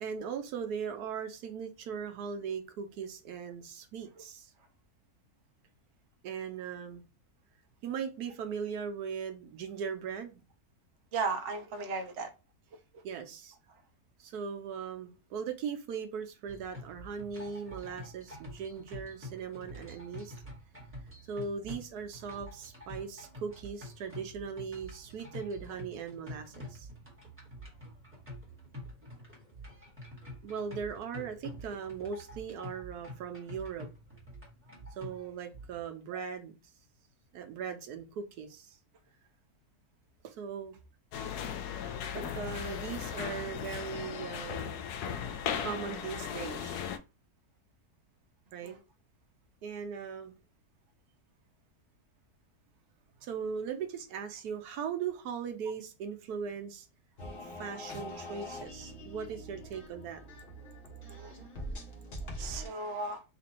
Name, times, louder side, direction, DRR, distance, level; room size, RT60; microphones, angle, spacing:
voice 1, 0.0-4.5 6.2-7.0 7.8-10.4 13.0-13.6 14.2-20.4 21.3-26.9 30.4-33.9 35.0-36.5 37.3-38.8 40.2-40.8 42.1-44.8 45.6-46.8 48.5-48.8 49.6-50.3 53.2-56.9 57.4-60.2, right 6 dB, 85° right, 1.3 m, -39 dB
voice 2, 11.1-12.3 48.6-48.8 61.1-61.4 62.4-63.2, right 4 dB, 55° right, 1.0 m, -35 dB
sound 1, 16.5-35.8, left 1 dB, 10° right, 1.3 m, -47 dB
sound 2, 41.1-47.0, left 8 dB, 85° left, 1.1 m, -37 dB
sound 3, 57.2-62.7, equal, 40° left, 1.1 m, -43 dB
3.8 x 2.5 x 4.2 m
omnidirectional pair, 1.6 m